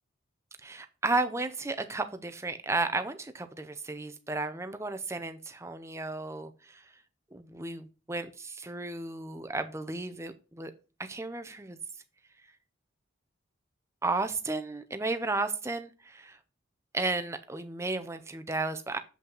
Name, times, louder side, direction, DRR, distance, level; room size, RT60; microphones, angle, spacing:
voice 1, 0.6-6.8 7.3-10.7 11.0-11.8 14.0-16.4 16.9-19.0, right 3 dB, 15° right, 9 dB, 0.5 m, -33 dB
7.5 x 5.5 x 3.9 m, 0.34 s
head